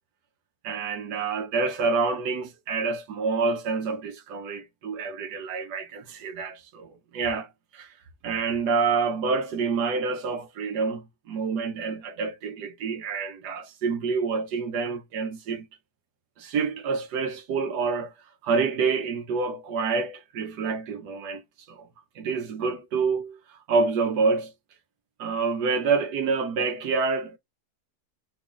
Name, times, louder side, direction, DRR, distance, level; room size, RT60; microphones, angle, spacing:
voice 1, 0.6-7.9 8.2-15.7 16.4-18.1 18.4-21.4 21.7-21.9 22.1-24.5 25.2-27.4, right 4 dB, 85° right, 1.4 m, -27 dB
4.9 x 2.4 x 3.7 m
omnidirectional pair, 1.7 m